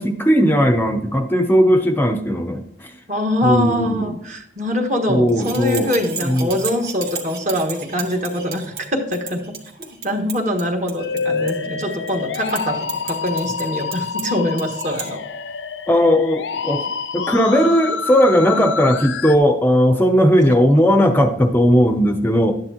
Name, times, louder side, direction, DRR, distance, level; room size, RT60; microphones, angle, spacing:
voice 1, 0.0-2.9 3.4-4.2 5.1-5.9 6.2-6.5 15.9-22.5, equal, 10° left, 6 dB, 0.5 m, -17 dB
voice 2, 3.1-9.5 10.0-15.2 20.5-20.6, left 1 dB, 40° right, 3 dB, 1.5 m, -23 dB
sound 1, 5.3-15.1, right 6 dB, 55° right, 1.8 m, -34 dB
Musical instrument, 11.0-19.4, left 5 dB, 85° left, 0.6 m, -27 dB
12.0 x 9.6 x 2.8 m, 0.72 s
head